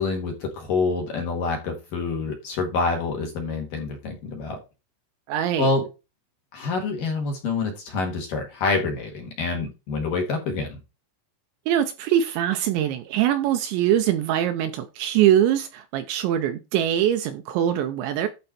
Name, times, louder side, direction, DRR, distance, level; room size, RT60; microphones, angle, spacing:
voice 1, 0.0-4.6 5.6-5.8 6.5-10.8, left 3 dB, 60° left, 2.7 m, -27 dB
voice 2, 5.3-5.7 11.7-18.3, right 11 dB, 80° right, 2.7 m, -23 dB
11.5 x 4.5 x 4.3 m
omnidirectional pair, 5.7 m